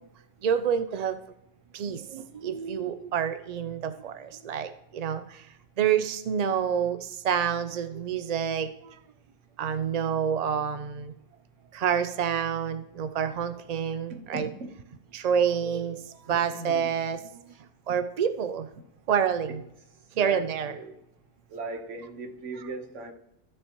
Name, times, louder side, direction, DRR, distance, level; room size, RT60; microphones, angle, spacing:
voice 1, 0.4-1.2 1.7-9.0 9.6-11.1 11.7-14.5 15.1-17.4 17.9-18.7 19.1-19.6 20.2-20.8, right 8 dB, 60° right, 11 dB, 0.4 m, -28 dB
voice 2, 14.1-14.7 16.3-17.0 17.5-17.6 20.2-21.0 21.5-23.1, right 2 dB, 90° right, 7 dB, 1.4 m, -38 dB
14.0 x 6.2 x 2.9 m, 0.84 s
omnidirectional pair, 1.2 m